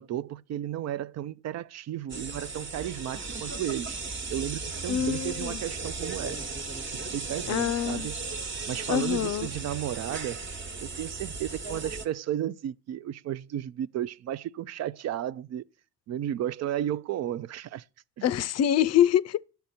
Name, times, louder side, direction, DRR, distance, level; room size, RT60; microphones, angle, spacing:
voice 1, 0.0-4.0 4.3-6.5 6.9-8.2 8.7-10.4 10.8-15.6 16.1-17.8 18.2-18.3, right 11 dB, 60° right, 0.4 m, -33 dB
sound 1, 2.1-12.1, right 4 dB, 40° right, 1.2 m, -36 dB
voice 2, 4.9-5.6 7.5-8.1 8.9-9.5 18.2-19.4, left 10 dB, 60° left, 0.5 m, -25 dB
10.0 x 6.8 x 4.2 m
cardioid pair, 90°, 30 cm